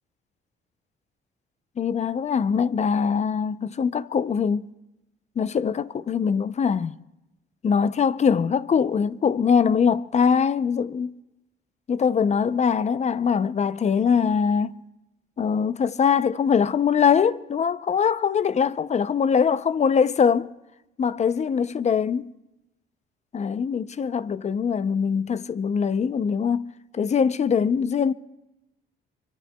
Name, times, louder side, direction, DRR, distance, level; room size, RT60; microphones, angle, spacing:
voice 1, 1.8-4.7 5.4-7.0 7.6-11.1 11.9-14.8 15.4-20.5 21.0-22.3 23.3-26.7 26.9-28.1, left 6 dB, 35° left, 0.5 m, -22 dB
25.0 x 23.0 x 2.2 m
cardioid pair, 90°, 20 cm